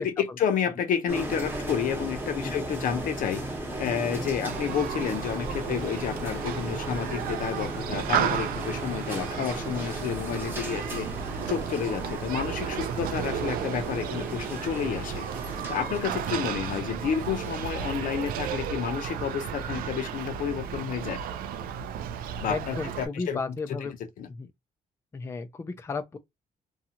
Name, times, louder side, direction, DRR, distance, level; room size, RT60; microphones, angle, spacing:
voice 1, 0.0-3.4 3.8-11.1 11.5-15.3 15.7-21.2 22.4-23.4 23.8-23.9 24.2-24.3, left 8 dB, 70° left, 0.6 m, -30 dB
sound 1, 1.1-20.8, right 1 dB, 15° right, 0.9 m, -37 dB
Human group actions, 4.5-23.1, right 8 dB, 90° right, 0.4 m, -33 dB
voice 2, 22.5-23.9 24.3-24.5 25.1-26.2, left 4 dB, 20° left, 0.3 m, -34 dB
2.6 x 2.3 x 2.8 m
cardioid pair, 105°, 14 cm